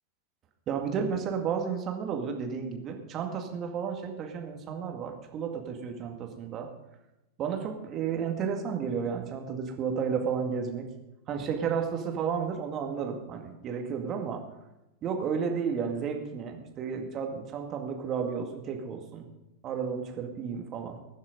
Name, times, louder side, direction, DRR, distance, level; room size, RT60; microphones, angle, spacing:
voice 1, 0.7-6.7 7.4-10.9 11.3-14.4 15.0-19.2 19.6-21.0, right 6 dB, 30° right, 3 dB, 2.2 m, -32 dB
21.0 x 7.2 x 5.2 m, 0.96 s
figure-of-eight pair, 90°, 0 cm